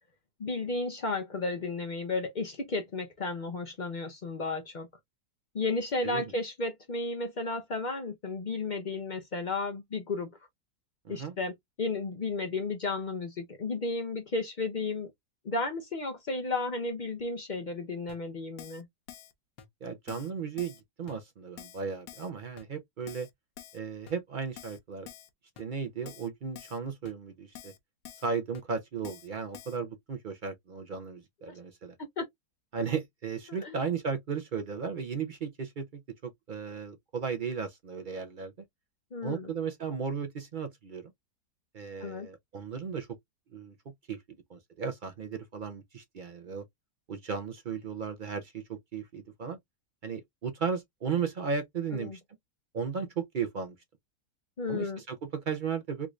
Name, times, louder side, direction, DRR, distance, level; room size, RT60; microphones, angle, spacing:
voice 1, 0.4-4.9 5.5-10.3 11.1-15.1 15.4-18.9 32.2-32.3 33.6-33.7 39.1-39.5 42.0-42.3 51.9-52.2 54.6-55.0, left 3 dB, 55° left, 0.5 m, -33 dB
voice 2, 11.0-11.4 19.8-23.3 23.7-25.1 25.6-27.7 28.2-31.9 32.7-35.9 36.2-38.5 39.2-41.0 41.7-43.2 43.5-43.8 44.1-44.2 44.5-46.6 47.1-49.6 50.0-52.2 52.7-53.8 54.7-56.1, right 6 dB, 75° right, 0.4 m, -35 dB
Keyboard (musical), 18.1-18.2 18.6-18.8 19.1-19.3 19.6-19.7 20.1-20.3 20.6-20.8 21.1-21.2 21.6-21.8 22.1-22.3 22.6-22.7 23.1-23.3 23.6-23.8 24.1-24.2 24.6-24.8 25.1-25.3 25.6-25.7 26.1-26.3 26.6-26.8 27.0-27.1 27.5-27.8 28.0-28.3 28.5-28.6 29.0-29.3 29.5-29.8, left 10 dB, 90° left, 1.3 m, -48 dB
3.6 x 2.5 x 3.0 m
omnidirectional pair, 1.7 m